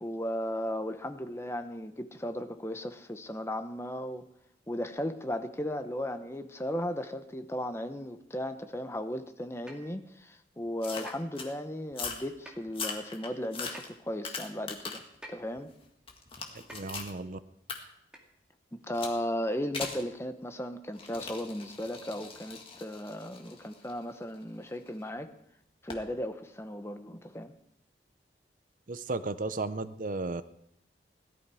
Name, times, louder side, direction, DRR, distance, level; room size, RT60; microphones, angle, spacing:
voice 1, 0.0-4.3 4.7-15.0 15.3-15.7 18.7-25.3 25.8-27.5, equal, 15° left, 8 dB, 0.9 m, -36 dB
sound 1, 9.7-9.9 11.1-11.2 12.5-12.7 13.7-13.8 15.2-15.5 16.7-16.9 18.1-18.3 18.8-18.9, equal, 5° right, 2.2 m, -48 dB
sound 2, 10.8-11.5 11.9-12.3 12.7-15.2 15.6-17.1 17.7-17.8 18.9-19.2 19.7-20.1 20.9-24.9 25.9-26.1, left 4 dB, 30° left, 1.9 m, -40 dB
voice 2, 16.5-17.4 28.9-30.4, right 3 dB, 50° right, 13 dB, 0.6 m, -34 dB
17.5 x 12.5 x 4.9 m, 0.75 s
head